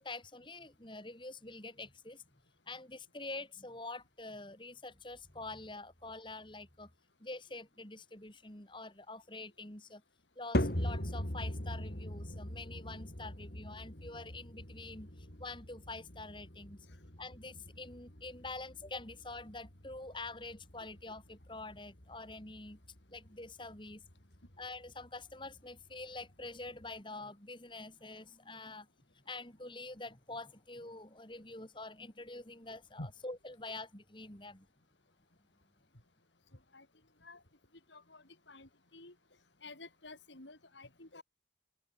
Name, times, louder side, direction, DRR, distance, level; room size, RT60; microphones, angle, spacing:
voice 1, 0.0-2.2 2.7-6.9 7.2-10.0 10.4-16.8 17.2-22.8 23.1-24.0 24.6-28.9 29.1-34.7, left 2 dB, 25° left, 3.9 m, -46 dB
sound 1, 10.5-27.0, left 1 dB, 60° left, 4.3 m, -42 dB
voice 2, 37.9-39.1 39.6-41.2, left 2 dB, 85° left, 5.0 m, -50 dB
open air
head